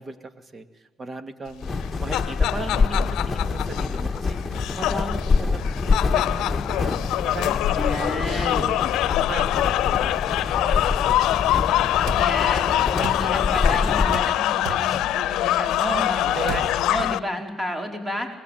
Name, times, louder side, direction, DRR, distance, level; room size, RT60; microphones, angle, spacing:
voice 1, 0.0-5.7 6.1-8.8 9.2-10.2 10.5-11.2 16.2-16.7, right 3 dB, 35° right, 9 dB, 2.3 m, -37 dB
sound 1, 1.6-14.2, left 4 dB, 20° left, 2.1 m, -26 dB
sound 2, 1.7-17.2, left 14 dB, 90° left, 0.7 m, -24 dB
voice 2, 7.6-8.6 12.1-18.3, equal, 15° right, 3 dB, 5.0 m, -31 dB
sound 3, 12.1-12.2 13.0-13.3 14.1-14.3 14.7-14.9 16.4-16.7, right 5 dB, 90° right, 2.6 m, -32 dB
25.5 x 20.5 x 9.3 m, 1.2 s
cardioid pair, 90°, 0 cm